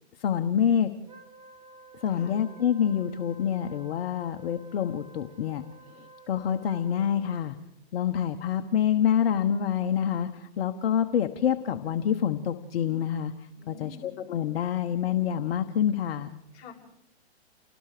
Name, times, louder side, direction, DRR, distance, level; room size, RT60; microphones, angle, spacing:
voice 1, 0.2-0.9 2.0-5.6 6.0-7.6 7.9-16.4, left 9 dB, 60° left, 7 dB, 1.3 m, -27 dB
Wind instrument woodwind instrument, 1.0-7.4, right 4 dB, 15° right, 1.9 m, -52 dB
voice 2, 2.1-2.4 13.5-14.1 16.5-16.7, left 4 dB, 25° left, -2 dB, 7.2 m, -47 dB
29.5 x 19.0 x 5.1 m, 0.86 s
hypercardioid pair, 130°, 34 cm